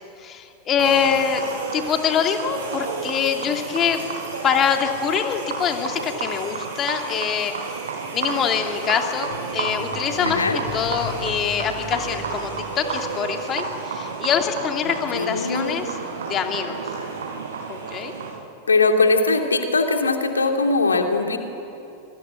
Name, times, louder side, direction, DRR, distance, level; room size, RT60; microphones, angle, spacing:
voice 1, 0.2-4.0 4.4-7.5 8.1-10.4 10.7-15.9 16.3-16.8 17.7-18.1, left 8 dB, 30° left, 4 dB, 2.8 m, -24 dB
sound 1, 0.8-18.3, right 5 dB, 65° right, 6.2 m, -31 dB
sound 2, 9.3-13.8 14.0-14.1, left 4 dB, 50° left, 4.1 m, -38 dB
voice 2, 10.2-10.6 14.8-15.7 18.7-21.4, left 3 dB, 75° left, 4 dB, 2.7 m, -21 dB
25.5 x 24.5 x 8.8 m, 2.8 s
figure-of-eight pair, 90°, 0 cm